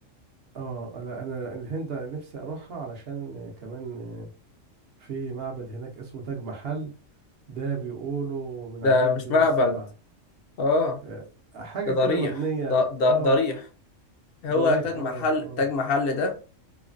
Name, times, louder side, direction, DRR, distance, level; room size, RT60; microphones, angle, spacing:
voice 1, 0.5-4.3 5.0-6.9 7.5-9.9 11.0-11.2 11.5-13.4 14.5-15.6, right 4 dB, 60° right, 1 dB, 0.8 m, -34 dB
voice 2, 8.8-9.7 10.6-11.0 11.9-12.3 12.7-13.6 14.4-16.3, left 3 dB, 60° left, 5 dB, 0.7 m, -22 dB
3.1 x 2.2 x 2.4 m, 0.35 s
omnidirectional pair, 1.3 m